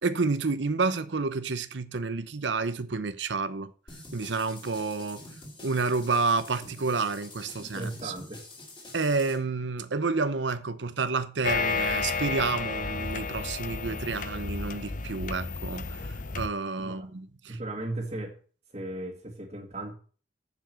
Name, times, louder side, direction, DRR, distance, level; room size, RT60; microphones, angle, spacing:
voice 1, 0.0-3.7 4.1-5.2 5.6-8.1 8.9-17.6, right 4 dB, 80° right, 0.8 m, -29 dB
sound 1, 3.9-9.4, left 2 dB, 25° left, 4.1 m, -47 dB
voice 2, 7.5-8.4 16.8-17.1 17.5-18.4 18.7-19.9, right 2 dB, 35° right, 1.8 m, -36 dB
sound 2, 11.4-16.5, left 4 dB, 45° left, 0.8 m, -32 dB
7.5 x 7.2 x 7.5 m
head